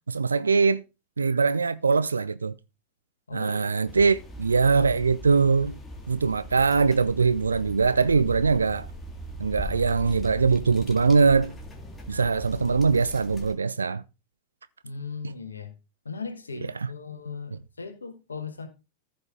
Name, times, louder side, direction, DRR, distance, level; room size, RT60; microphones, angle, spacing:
voice 1, 0.1-0.8 1.2-2.5 3.3-5.8 6.1-8.9 9.4-11.5 12.1-14.0, right 4 dB, 75° right, 0.4 m, -22 dB
voice 2, 3.3-4.0 14.8-15.7 16.0-18.7, left 5 dB, 75° left, 1.2 m, -38 dB
sound 1, 3.9-13.5, equal, 15° left, 1.9 m, -40 dB
14.5 x 5.2 x 3.7 m
figure-of-eight pair, 90°, 0 cm